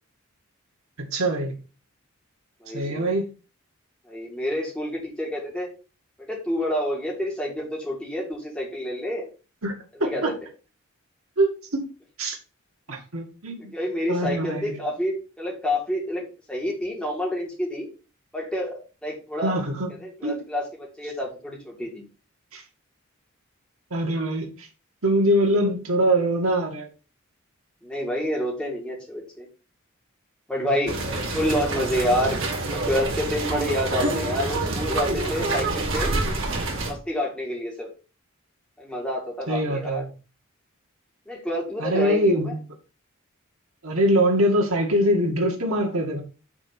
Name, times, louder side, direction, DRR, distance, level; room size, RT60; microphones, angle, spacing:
voice 1, 1.0-1.6 2.7-3.3 9.6-9.7 10.0-10.3 11.4-11.9 12.2-12.4 12.9-13.7 14.1-14.8 19.4-19.9 20.2-20.4 22.5-22.6 23.9-24.7 25.0-26.9 39.5-40.1 41.8-42.6 43.8-46.2, right 1 dB, 85° right, 2.2 m, -23 dB
voice 2, 2.6-3.2 4.1-5.7 6.3-9.3 10.0-10.3 13.7-16.2 16.5-17.9 18.3-19.6 20.0-22.0 27.8-29.5 30.5-31.0 31.3-32.4 32.7-36.1 36.9-37.9 38.8-40.0 41.3-42.6, equal, 5° left, 2.8 m, -28 dB
sound 1, 30.9-36.9, right 2 dB, 65° right, 2.2 m, -27 dB
6.1 x 4.2 x 6.0 m
head